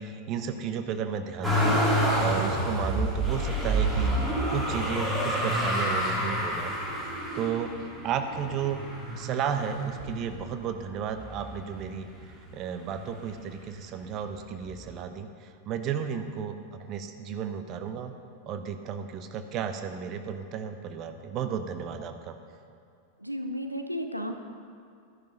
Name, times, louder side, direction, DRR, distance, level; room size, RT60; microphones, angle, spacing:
voice 1, 0.0-1.8 2.2-6.9 7.3-8.8 9.1-18.1 18.5-22.4, right 7 dB, 35° right, 7 dB, 0.9 m, -33 dB
Motor vehicle (road), 1.4-10.6 11.2-12.0 12.2-13.4 14.4-14.5, right 1 dB, 10° right, 3.7 m, -28 dB
voice 2, 23.2-24.3, equal, 90° right, 5 dB, 0.8 m, -33 dB
14.0 x 10.5 x 5.5 m, 2.3 s
figure-of-eight pair, 90°, 0 cm